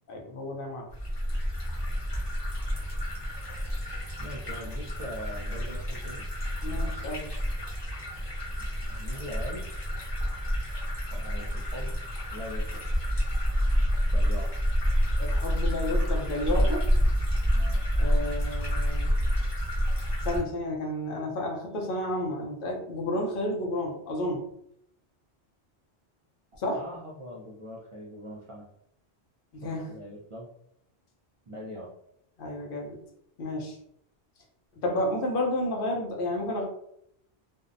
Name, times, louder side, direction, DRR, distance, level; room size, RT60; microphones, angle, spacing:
voice 1, 0.1-0.9 6.6-7.3 15.2-16.9 18.0-19.1 20.2-24.4 26.6-26.8 29.5-29.9 32.4-33.0 33.4-33.8 34.8-36.7, left 1 dB, 60° left, 0 dB, 0.7 m, -31 dB
sound 1, 0.9-20.4, equal, 25° left, 0.7 m, -28 dB
voice 2, 4.2-6.2 8.6-9.7 11.1-12.0 12.3-12.8 14.1-14.6 17.5-17.9 26.8-28.7 29.6-30.5 31.5-31.9, equal, 60° right, -6 dB, 0.3 m, -42 dB
2.6 x 2.0 x 2.5 m, 0.74 s
omnidirectional pair, 1.1 m